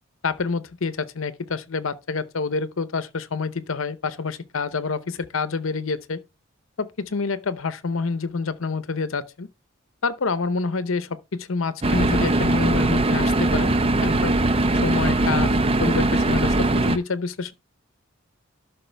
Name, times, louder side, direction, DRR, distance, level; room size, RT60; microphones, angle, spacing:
voice 1, 0.2-6.2 6.8-9.5 10.0-13.7 14.0-14.4 14.7-17.5, left 4 dB, 80° left, 0.8 m, -27 dB
sound 1, 11.8-17.0, right 2 dB, 30° right, 0.6 m, -20 dB
12.0 x 5.9 x 3.4 m
head